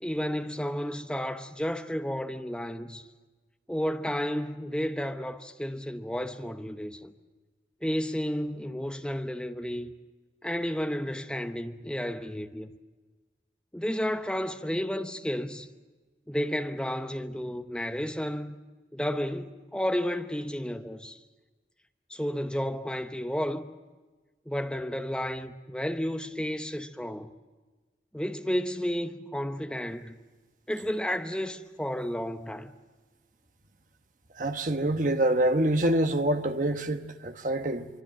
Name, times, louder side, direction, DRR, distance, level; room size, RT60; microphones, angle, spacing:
voice 1, 0.0-3.1 3.7-7.1 7.8-9.9 10.4-12.7 13.7-15.7 16.3-18.6 18.9-21.2 22.1-23.7 24.5-27.3 28.1-30.1 30.7-32.7, equal, 5° left, 0.9 m, -32 dB
voice 2, 34.4-37.9, right 1 dB, 45° right, 1.2 m, -26 dB
24.5 x 24.5 x 7.6 m
head